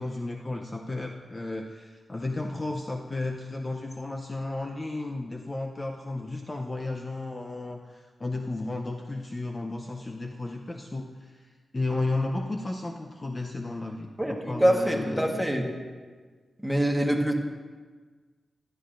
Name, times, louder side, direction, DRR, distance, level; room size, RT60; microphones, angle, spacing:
voice 1, 0.0-15.5, left 2 dB, 25° left, 2 dB, 0.6 m, -33 dB
voice 2, 14.2-15.7 16.6-17.3, right 1 dB, ahead, 1 dB, 1.3 m, -25 dB
15.5 x 11.5 x 2.5 m, 1.5 s
wide cardioid pair, 95°, 0 cm